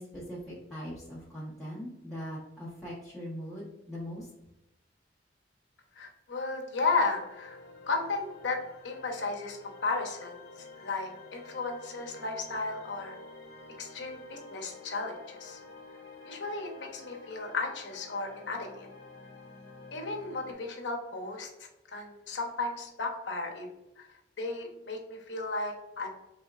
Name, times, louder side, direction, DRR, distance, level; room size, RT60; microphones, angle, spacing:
voice 1, 0.0-4.3, equal, ahead, -9 dB, 0.9 m, -41 dB
voice 2, 6.0-7.6 7.9-8.6 8.8-10.4 10.8-13.1 13.8-15.6 16.3-18.9 19.9-23.7 24.0-24.1 24.4-26.1, left 3 dB, 70° left, 1 dB, 0.9 m, -34 dB
sound 1, 6.8-20.5, left 3 dB, 50° left, 1.2 m, -50 dB
4.3 x 3.4 x 2.3 m, 0.94 s
head